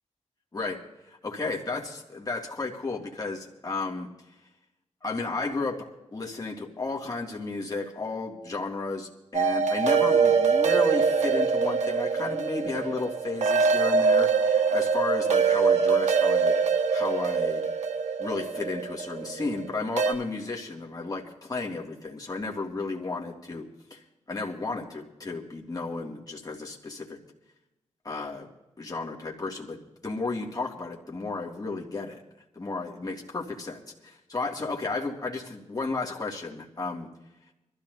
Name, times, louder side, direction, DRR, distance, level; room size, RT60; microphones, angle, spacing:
voice 1, 1.2-4.1 5.0-16.5 16.9-17.6 18.2-24.0 24.3-27.2 28.0-28.5 28.8-32.2 32.5-37.1, left 3 dB, 30° left, -1 dB, 2.3 m, -33 dB
sound 1, 9.3-20.1, right 5 dB, 75° right, 1.3 m, -24 dB
25.0 x 13.5 x 2.7 m, 0.96 s
cardioid pair, 75°, 12 cm